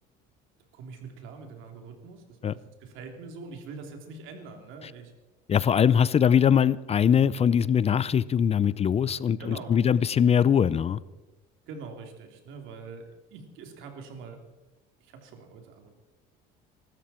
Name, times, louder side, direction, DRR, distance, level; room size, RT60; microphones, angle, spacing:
voice 1, 0.7-5.1 9.4-9.8 11.7-14.4 15.0-15.9, right 4 dB, 75° right, 4 dB, 3.4 m, -44 dB
voice 2, 5.5-11.0, left 8 dB, 30° left, 19 dB, 0.5 m, -22 dB
23.0 x 13.0 x 4.4 m, 1.1 s
cardioid pair, 110°, 20 cm